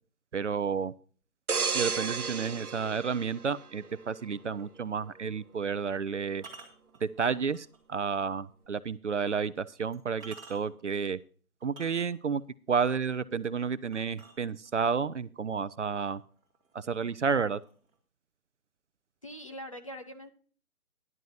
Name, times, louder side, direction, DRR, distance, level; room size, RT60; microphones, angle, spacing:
voice 1, 0.3-0.9 1.7-6.4 7.0-11.2 11.6-12.4 12.7-16.2 16.7-17.6, right 6 dB, 55° right, 16 dB, 0.5 m, -31 dB
sound 1, 1.5-4.2 4.6-4.8, right 5 dB, 80° right, 1.0 m, -33 dB
sound 2, 4.6-4.8 6.3-7.8 8.3-8.4 9.3-9.4 9.9-10.9 11.6-12.4 13.9-14.9 15.8-15.9 16.3-16.7 17.0-18.0, right 4 dB, 10° right, 2.0 m, -51 dB
voice 2, 19.2-20.3, equal, 25° left, 5 dB, 0.6 m, -42 dB
14.0 x 11.0 x 2.7 m, 0.42 s
figure-of-eight pair, 150°, 44 cm